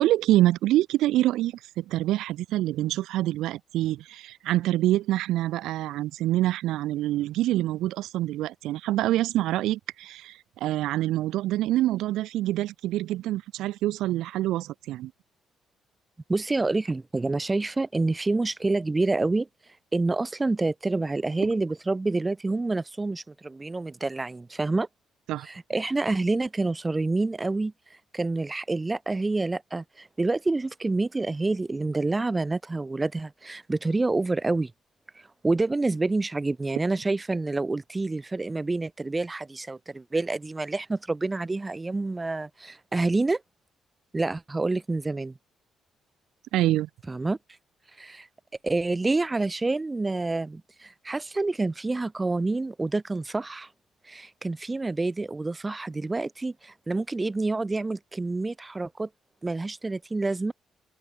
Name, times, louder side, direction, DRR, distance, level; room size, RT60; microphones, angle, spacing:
voice 1, 0.0-15.1 25.3-25.5 46.5-46.9, right 15 dB, 90° right, 0.4 m, -26 dB
voice 2, 16.3-19.5 19.9-24.9 25.4-27.7 28.1-34.7 35.4-43.4 44.1-45.4 47.1-47.4 48.0-48.3 48.6-53.7 54.1-59.1 59.4-60.5, right 3 dB, 20° right, 1.0 m, -27 dB
cardioid pair, 90°, 0 cm